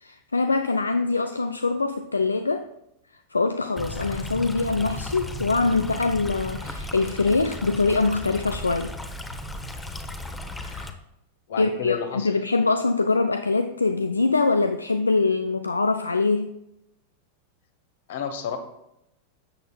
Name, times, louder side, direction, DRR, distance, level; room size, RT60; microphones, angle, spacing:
voice 1, 0.0-2.7 3.3-8.9 10.6-10.9 11.6-16.5, left 3 dB, 80° left, 9 dB, 0.4 m, -23 dB
Stream, 3.8-10.9, left 1 dB, 10° left, 0.9 m, -35 dB
voice 2, 11.5-12.3 18.1-18.6, left 8 dB, 55° left, 8 dB, 1.3 m, -30 dB
13.0 x 8.0 x 2.4 m, 0.84 s
figure-of-eight pair, 90°, 0 cm